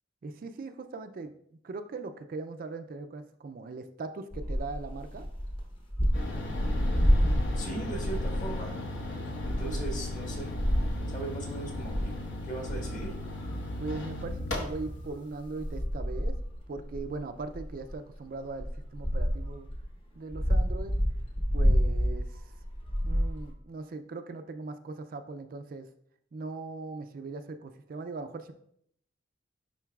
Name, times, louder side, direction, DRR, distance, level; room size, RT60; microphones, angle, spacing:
voice 1, 0.2-1.3 1.6-5.3 9.6-9.8 13.8-16.3 16.7-19.7 20.2-20.9 21.5-22.5 23.1-25.9 26.3-28.5, right 3 dB, 45° right, 8 dB, 0.4 m, -40 dB
sound 1, 4.3-8.7 9.0-9.1 9.4-11.1 11.7-12.1 12.7-13.8 14.2-19.8 20.3-23.5, equal, 25° left, 0.9 m, -29 dB
sound 2, 6.1-15.1, left 1 dB, 65° left, 1.2 m, -37 dB
voice 2, 7.5-8.8 9.4-10.5 11.1-12.1 12.5-13.1, right 2 dB, 40° left, 0 dB, 1.5 m, -38 dB
10.5 x 3.9 x 2.3 m, 0.69 s
head